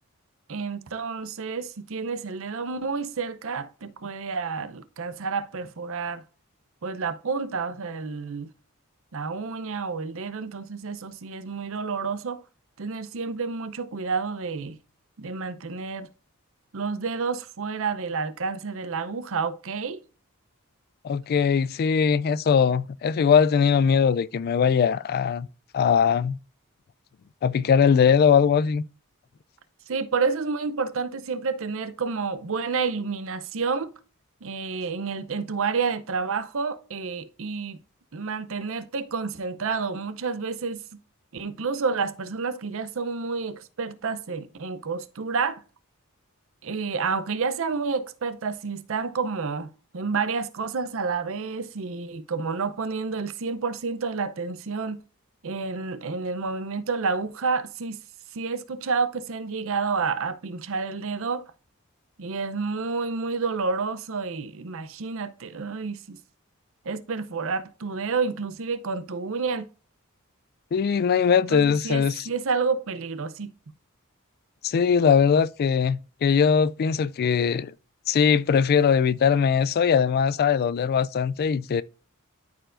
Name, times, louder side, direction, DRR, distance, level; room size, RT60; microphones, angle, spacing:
voice 1, 0.5-6.2 6.8-8.5 9.1-12.4 12.8-14.8 15.2-16.1 16.7-20.0 29.9-33.9 34.4-37.8 38.1-40.8 41.3-45.6 46.6-55.0 55.4-58.0 58.3-61.4 62.2-66.2 66.8-69.7 71.5-73.5, right 4 dB, 65° right, 0.7 m, -29 dB
voice 2, 21.0-25.5 25.7-26.4 27.4-28.8 70.7-72.2 74.6-77.7 78.1-81.8, left 6 dB, 45° left, 0.3 m, -21 dB
13.0 x 4.5 x 2.6 m
head